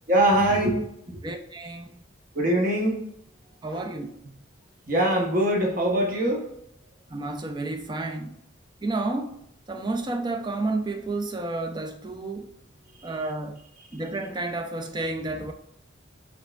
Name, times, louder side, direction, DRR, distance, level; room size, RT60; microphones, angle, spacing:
voice 1, 0.1-0.8 2.3-3.1 3.7-3.9 4.9-6.4, right 1 dB, 45° right, 0.9 m, -22 dB
voice 2, 1.2-1.9 3.6-4.4 7.1-8.3 8.8-9.4 9.7-12.5 13.0-13.6 13.9-15.5, right 2 dB, 20° right, 0.4 m, -31 dB
4.4 x 3.4 x 2.3 m
head